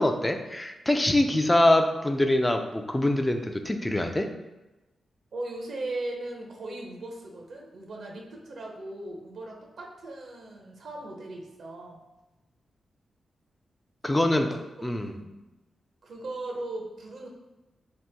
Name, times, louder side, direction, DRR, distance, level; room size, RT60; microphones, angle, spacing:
voice 1, 0.0-4.3 14.0-14.5 14.8-15.1, left 1 dB, 15° left, 5 dB, 0.3 m, -24 dB
voice 2, 5.3-12.0 14.2-14.6 15.1-15.3 16.0-17.3, right 2 dB, 70° right, 0 dB, 0.6 m, -38 dB
2.8 x 2.1 x 3.3 m, 1.1 s
cardioid pair, 60°, 0 cm